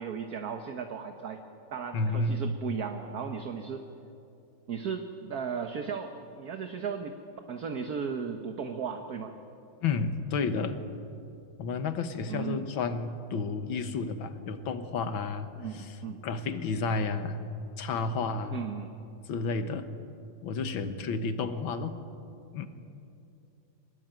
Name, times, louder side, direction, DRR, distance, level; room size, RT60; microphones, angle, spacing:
voice 1, 0.0-1.4 1.7-3.8 4.7-7.2 7.5-9.3 12.3-12.6 15.6-16.2 18.5-18.9, right 6 dB, 50° right, 6 dB, 1.5 m, -36 dB
voice 2, 1.9-2.5 9.8-10.8 11.6-16.0 16.2-18.6 19.3-19.9 20.4-22.0 22.5-22.7, left 4 dB, 65° left, 9 dB, 2.0 m, -31 dB
24.0 x 21.0 x 9.0 m, 2.7 s
omnidirectional pair, 2.4 m